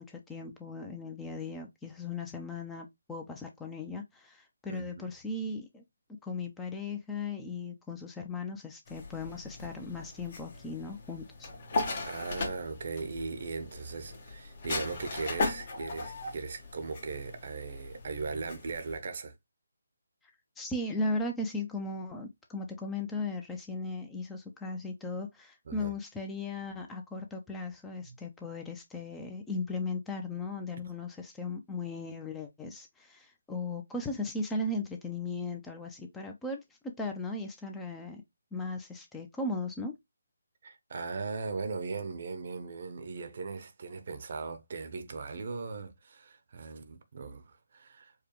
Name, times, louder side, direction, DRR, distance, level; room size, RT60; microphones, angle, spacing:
voice 1, 0.0-5.8 6.2-11.5 20.6-38.2 38.5-39.9, left 2 dB, 10° left, 0.5 m, -37 dB
voice 2, 4.7-5.1 12.0-19.3 25.7-25.9 28.1-28.2 40.6-48.1, right 4 dB, 50° right, 0.7 m, -38 dB
sound 1, 8.9-19.0, left 3 dB, 45° left, 1.2 m, -38 dB
4.8 x 2.2 x 3.0 m
figure-of-eight pair, 155°, 0 cm